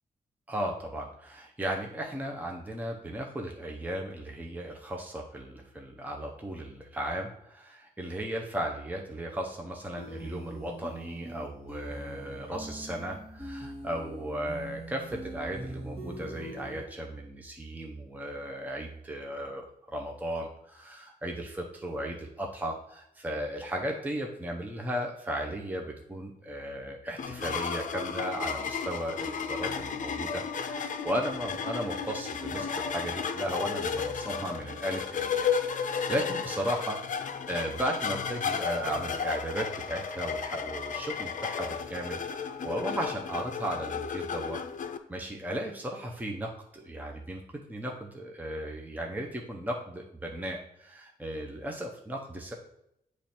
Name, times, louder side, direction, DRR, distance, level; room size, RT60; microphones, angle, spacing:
voice 1, 0.5-44.6 45.1-47.4 47.7-52.5, right 1 dB, 10° right, 1 dB, 0.7 m, -36 dB
sound 1, 10.0-16.8, right 1 dB, 40° right, 1.6 m, -42 dB
sound 2, 27.2-45.0, left 6 dB, 60° left, 0.5 m, -33 dB
8.7 x 3.2 x 4.3 m, 0.78 s
wide cardioid pair, 120°, 15 cm